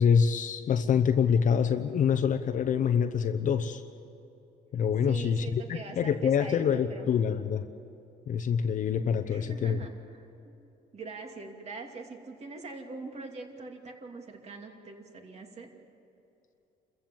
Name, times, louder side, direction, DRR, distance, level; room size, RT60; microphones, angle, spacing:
voice 1, 0.0-3.8 4.7-7.6 8.3-9.8, left 7 dB, 50° left, 8 dB, 0.9 m, -26 dB
voice 2, 5.0-7.1 9.3-10.6 10.9-15.7, right 3 dB, 40° right, 3 dB, 2.6 m, -43 dB
28.5 x 15.0 x 7.5 m, 2.8 s
cardioid pair, 110°, 17 cm